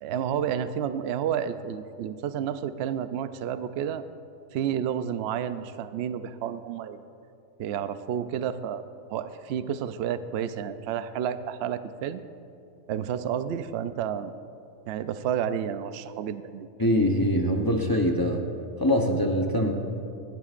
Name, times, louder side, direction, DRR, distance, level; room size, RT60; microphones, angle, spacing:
voice 1, 0.0-4.0 4.5-7.0 7.6-8.8 9.1-12.2 12.9-14.3 14.9-16.7, right 9 dB, 80° right, 11 dB, 0.5 m, -30 dB
voice 2, 16.8-18.4 18.8-19.7, equal, 20° left, 1 dB, 0.5 m, -23 dB
25.5 x 11.5 x 2.5 m, 2.5 s
omnidirectional pair, 1.7 m